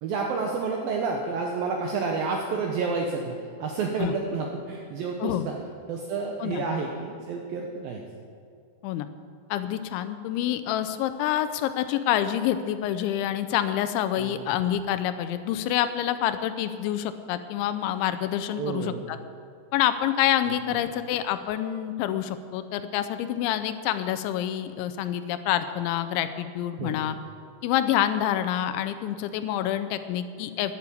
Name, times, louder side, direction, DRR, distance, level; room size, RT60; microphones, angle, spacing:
voice 1, 0.0-5.5 5.9-8.0 14.2-14.4 18.6-19.0 20.5-20.8 26.8-27.0, right 4 dB, 75° right, 1 dB, 2.1 m, -30 dB
voice 2, 9.5-19.2 19.7-27.2 27.6-30.8, left 11 dB, 85° left, 11 dB, 3.0 m, -27 dB
11.0 x 10.5 x 8.4 m, 2.3 s
omnidirectional pair, 5.4 m